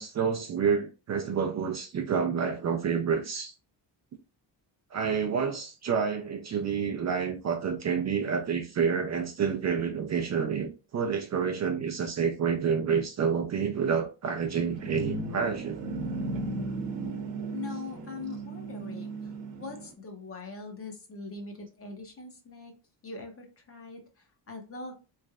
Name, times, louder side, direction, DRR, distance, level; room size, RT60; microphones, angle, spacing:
voice 1, 0.0-3.5 4.9-15.8, right 6 dB, 40° right, 0.4 m, -28 dB
sound 1, 14.3-19.9, right 3 dB, 80° right, 0.8 m, -36 dB
voice 2, 17.5-22.7 23.0-24.9, left 4 dB, 30° left, 0.7 m, -42 dB
3.6 x 3.2 x 2.3 m
cardioid pair, 170°, 44 cm